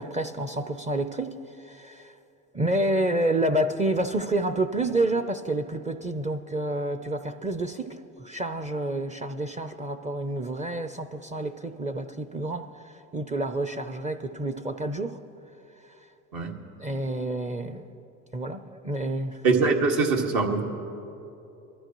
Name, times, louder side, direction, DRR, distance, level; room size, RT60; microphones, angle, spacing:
voice 1, 0.0-1.4 1.7-2.1 2.5-12.7 13.1-15.2 16.8-17.8 18.3-19.4, right 1 dB, 20° right, 9 dB, 0.6 m, -29 dB
voice 2, 19.4-20.6, right 4 dB, 65° right, 1 dB, 2.0 m, -22 dB
23.5 x 13.0 x 3.1 m, 2.8 s
supercardioid pair, 85°, 36 cm